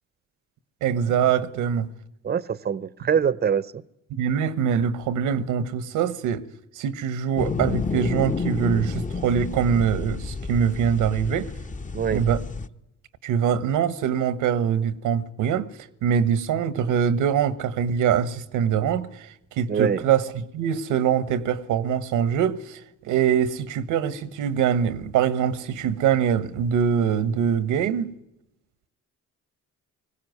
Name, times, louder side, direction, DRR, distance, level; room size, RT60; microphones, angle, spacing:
voice 1, 0.8-1.9 4.1-6.4 6.7-11.5 12.1-12.4 13.2-15.7 16.0-19.3 19.6-28.1, right 8 dB, 90° right, 1.3 m, -23 dB
voice 2, 2.2-3.7 11.9-12.2 19.7-20.0, right 7 dB, 35° right, 0.8 m, -23 dB
sound 1, 7.4-12.7, left 4 dB, 25° left, 1.0 m, -30 dB
20.0 x 16.5 x 9.4 m
cardioid pair, 90°, 30 cm